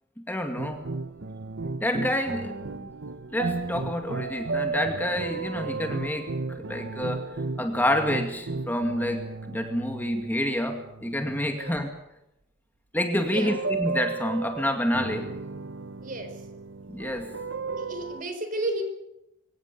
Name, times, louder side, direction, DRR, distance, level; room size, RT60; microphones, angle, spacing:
voice 1, 0.3-0.8 1.8-2.9 3.3-7.2 7.6-11.9 12.9-15.3 16.9-17.3, left 1 dB, 10° left, 4 dB, 2.2 m, -28 dB
sound 1, 0.6-11.5 13.1-18.2, right 4 dB, 70° right, 1.0 m, -34 dB
voice 2, 11.5-11.8 13.2-13.6 16.0-16.4 17.7-18.8, right 1 dB, 45° right, 7 dB, 4.7 m, -33 dB
24.0 x 17.5 x 8.4 m, 0.86 s
head